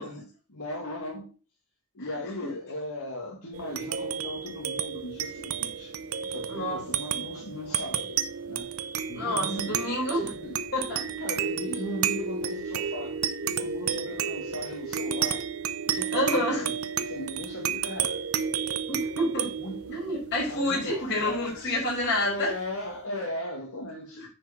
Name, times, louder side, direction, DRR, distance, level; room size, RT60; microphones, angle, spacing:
voice 1, 0.0-1.3 1.9-5.9 6.2-8.2 8.4-8.7 9.1-9.9 10.3-10.6 11.2-15.5 15.8-18.3 19.6-20.2 20.5-21.8 22.2-24.2, left 1 dB, 75° left, 2.1 m, -37 dB
sound 1, 3.5-22.4, right 7 dB, 75° right, 0.7 m, -32 dB
voice 2, 6.5-6.8 9.1-10.3 10.7-11.1 16.1-16.6 18.9-19.5 19.9-22.5 24.2-24.3, left 1 dB, 55° left, 5.3 m, -28 dB
9.8 x 4.8 x 5.0 m
head